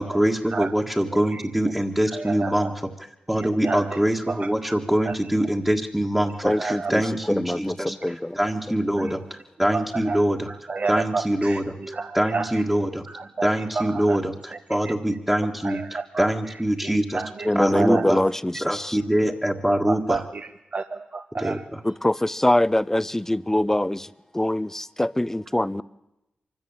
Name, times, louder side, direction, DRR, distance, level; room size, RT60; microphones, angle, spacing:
voice 1, 0.0-2.7 3.3-7.9 8.3-10.5 10.9-13.0 13.4-17.2 17.5-18.2 18.6-20.2 21.4-21.8, right 1 dB, 5° right, 1.7 m, -24 dB
voice 2, 2.1-2.7 3.4-4.5 5.1-5.2 6.4-6.9 7.5-7.6 9.0-9.1 9.7-12.6 13.1-14.2 14.5-14.6 14.8-14.9 15.6-16.3 16.8-18.2 19.7-21.7, right 4 dB, 50° right, 1.0 m, -31 dB
voice 3, 6.4-7.0 7.3-8.4 9.0-9.1 17.4-19.0 21.8-25.8, left 1 dB, 10° left, 0.6 m, -24 dB
24.0 x 14.0 x 8.8 m
cardioid pair, 50°, 3 cm